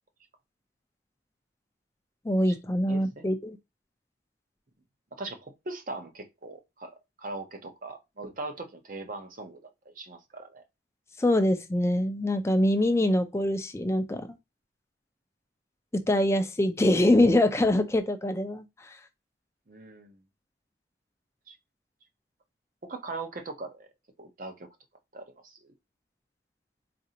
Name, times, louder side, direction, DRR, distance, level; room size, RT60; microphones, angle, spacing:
voice 1, 2.2-3.6 11.2-14.3 15.9-19.0, left 1 dB, 15° left, 0.4 m, -24 dB
voice 2, 2.9-3.3 5.1-6.9 7.2-10.6 19.7-20.2 21.5-21.6 22.9-23.9 24.2-24.7 25.1-25.6, right 3 dB, 50° right, 0.7 m, -40 dB
4.1 x 2.5 x 2.8 m
head